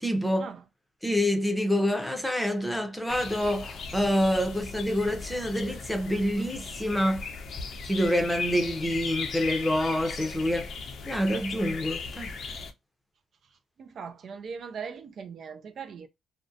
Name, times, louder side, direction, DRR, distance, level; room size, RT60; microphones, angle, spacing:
voice 1, 0.0-0.5 1.0-7.2 7.8-10.7 11.1-12.3, equal, 5° left, 0.7 m, -27 dB
sound 1, 3.1-12.7, left 4 dB, 60° left, 0.5 m, -37 dB
voice 2, 13.8-16.1, right 6 dB, 55° right, 0.4 m, -40 dB
2.6 x 2.1 x 2.5 m
cardioid pair, 90°, 0 cm